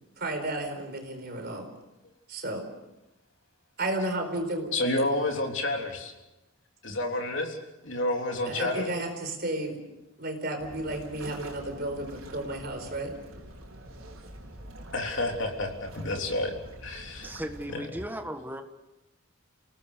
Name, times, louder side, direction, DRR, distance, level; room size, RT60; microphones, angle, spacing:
voice 1, 0.2-1.7 2.3-2.7 3.8-4.7 8.5-9.8 10.2-13.2, right 1 dB, 50° right, 5 dB, 4.4 m, -33 dB
voice 2, 4.7-6.1 6.8-7.6 7.8-8.9 14.9-16.6 16.8-17.3 17.7-17.9, left 2 dB, 60° left, 2 dB, 3.6 m, -29 dB
sound 1, 10.6-17.7, right 1 dB, 75° right, 4.5 m, -45 dB
voice 3, 17.2-18.6, equal, 10° right, 6 dB, 1.5 m, -36 dB
29.0 x 18.0 x 6.8 m, 0.97 s
head